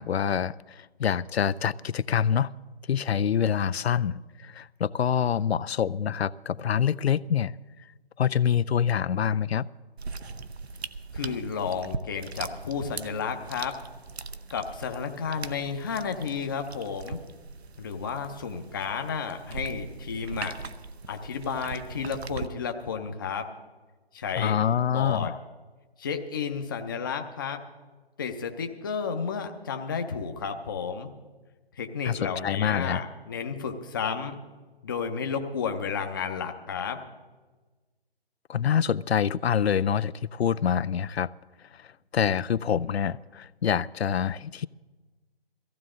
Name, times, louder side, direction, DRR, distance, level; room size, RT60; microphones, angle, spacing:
voice 1, 0.0-2.5 2.9-7.5 8.2-9.7 24.4-25.4 32.1-33.0 38.5-41.3 42.1-44.7, left 8 dB, 80° left, 19 dB, 0.5 m, -26 dB
sound 1, 10.0-22.5, right 4 dB, 85° right, 0.8 m, -40 dB
voice 2, 11.1-13.8 14.5-17.2 17.8-20.5 21.1-23.5 24.1-24.6 24.9-25.3 26.0-27.6 28.2-31.1 31.7-34.4 34.8-37.0, left 6 dB, 20° left, 5 dB, 0.6 m, -32 dB
17.0 x 15.5 x 3.7 m, 1.3 s
figure-of-eight pair, 150°, 31 cm